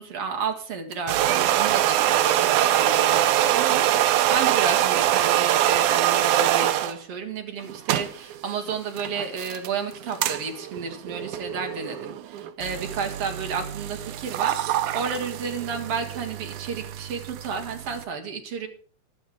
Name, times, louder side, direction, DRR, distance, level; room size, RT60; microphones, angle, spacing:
voice 1, 0.0-18.7, right 5 dB, 45° right, 4 dB, 2.5 m, -32 dB
sound 1, 0.9-7.0 7.6-18.0, right 12 dB, 85° right, 1.7 m, -24 dB
16.5 x 12.0 x 3.7 m, 0.43 s
omnidirectional pair, 4.5 m